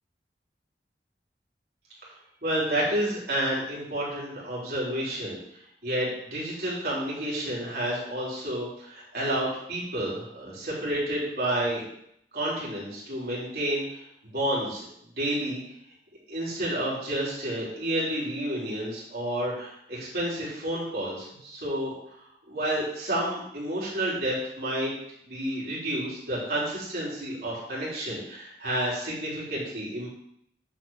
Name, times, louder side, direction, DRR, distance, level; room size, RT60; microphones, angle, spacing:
voice 1, 2.4-5.4 5.8-11.8 12.3-14.0 14.3-14.9 15.2-15.6 16.3-21.9 22.5-24.9 25.2-30.1, right 1 dB, 60° right, -7 dB, 4.0 m, -30 dB
7.5 x 5.2 x 7.4 m, 0.75 s
head